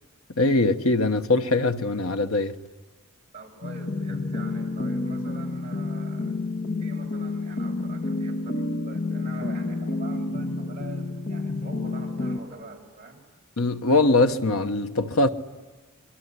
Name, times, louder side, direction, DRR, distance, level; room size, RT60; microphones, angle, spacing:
voice 1, 0.4-2.6 13.6-15.3, left 2 dB, 75° left, 1.2 m, -22 dB
voice 2, 3.3-6.4 6.8-13.2, right 2 dB, 30° right, 6.2 m, -44 dB
sound 1, 3.6-12.4, left 2 dB, 55° left, 1.7 m, -29 dB
27.0 x 22.5 x 9.8 m
head